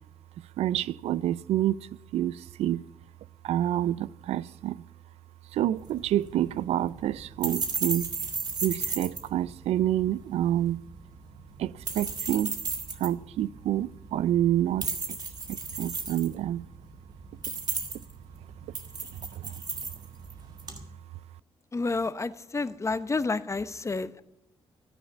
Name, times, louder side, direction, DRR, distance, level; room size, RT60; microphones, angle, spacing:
voice 1, 0.4-2.8 3.4-4.8 5.5-8.1 8.6-10.8 11.6-12.5 13.0-14.9 15.5-16.7 19.3-19.6, right 12 dB, 80° right, 0.4 m, -28 dB
sound 1, 5.8-20.9, right 4 dB, 40° right, 2.1 m, -36 dB
voice 2, 21.7-24.2, left 3 dB, 30° left, 0.8 m, -30 dB
13.5 x 9.3 x 7.2 m
cardioid pair, 65°, 10 cm